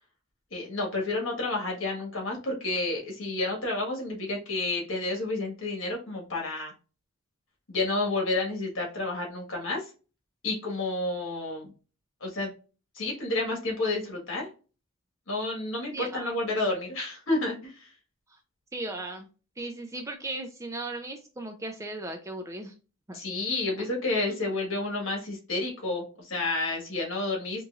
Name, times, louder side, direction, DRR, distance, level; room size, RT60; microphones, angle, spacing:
voice 1, 0.5-6.7 7.7-9.9 10.4-11.7 12.2-12.5 12.9-14.5 15.3-17.9 23.1-27.6, left 2 dB, 60° left, 0 dB, 1.5 m, -30 dB
voice 2, 15.9-16.3 18.7-19.3 19.6-22.7 23.1-23.2 23.8-23.9 24.3-24.4, right 2 dB, 15° right, 5 dB, 0.4 m, -37 dB
4.0 x 3.0 x 2.4 m, 0.34 s
head